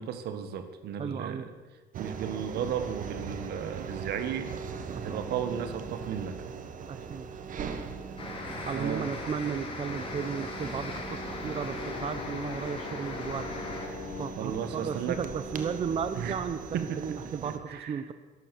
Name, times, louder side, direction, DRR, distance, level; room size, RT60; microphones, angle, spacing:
voice 1, 0.0-1.5 2.0-4.5 4.9-6.4 8.7-9.1 13.9-14.0 14.4-15.2 16.2-16.4 16.7-18.0, right 8 dB, 70° right, 10 dB, 1.6 m, -35 dB
voice 2, 1.0-1.4 4.9-5.2 6.9-7.3 8.7-13.5 14.2-18.1, right 7 dB, 35° right, 11 dB, 0.7 m, -34 dB
sound 1, 1.9-17.6, right 6 dB, 50° right, 1.6 m, -40 dB
sound 2, 8.2-13.9, left 3 dB, 30° left, 3.0 m, -39 dB
sound 3, 11.4-16.9, left 9 dB, 60° left, 1.4 m, -44 dB
13.0 x 12.5 x 7.0 m, 1.3 s
cardioid pair, 110°, 17 cm